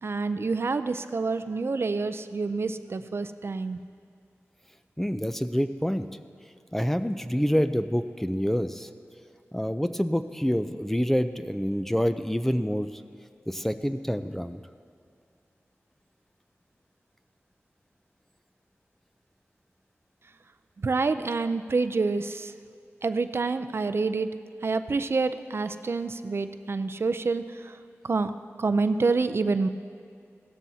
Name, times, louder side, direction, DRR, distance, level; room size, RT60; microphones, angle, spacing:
voice 1, 0.0-3.8 20.8-22.5 23.0-24.3 24.6-27.8 28.0-28.3 28.6-29.7, right 4 dB, 55° right, 10 dB, 0.4 m, -27 dB
voice 2, 5.0-6.1 6.7-8.9 9.5-13.0 13.5-14.6, equal, 5° left, 10 dB, 0.4 m, -27 dB
16.5 x 13.0 x 2.8 m, 2.3 s
wide cardioid pair, 80°, 5 cm